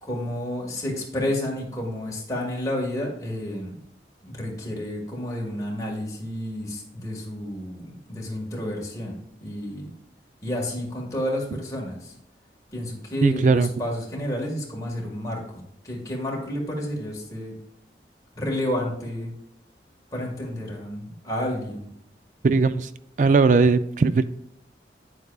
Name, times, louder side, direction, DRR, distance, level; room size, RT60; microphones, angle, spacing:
voice 1, 0.0-3.7 4.2-9.9 10.4-12.1 12.7-17.6 18.4-19.3 20.1-21.9, left 1 dB, 20° left, -2 dB, 1.8 m, -30 dB
voice 2, 13.2-13.7 22.4-22.9 23.2-24.2, right 4 dB, 45° right, 13 dB, 0.3 m, -19 dB
9.6 x 7.9 x 2.4 m, 0.75 s
head